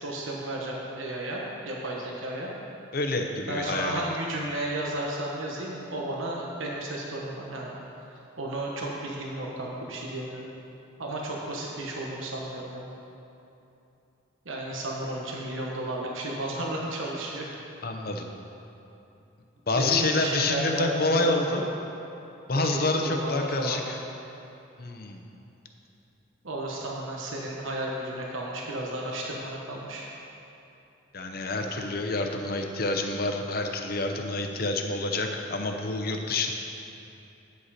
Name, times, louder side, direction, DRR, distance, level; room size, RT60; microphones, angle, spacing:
voice 1, 0.0-2.5 3.5-7.7 8.4-10.5 11.0-12.9 14.4-17.5 19.7-21.7 22.6-23.8 26.4-30.1, right 1 dB, 80° right, -2 dB, 1.2 m, -33 dB
voice 2, 2.9-4.0 17.8-18.3 19.7-21.6 22.5-24.0 24.8-25.2 31.1-36.5, left 2 dB, 50° left, 4 dB, 0.7 m, -27 dB
9.4 x 8.0 x 4.2 m, 2.8 s
head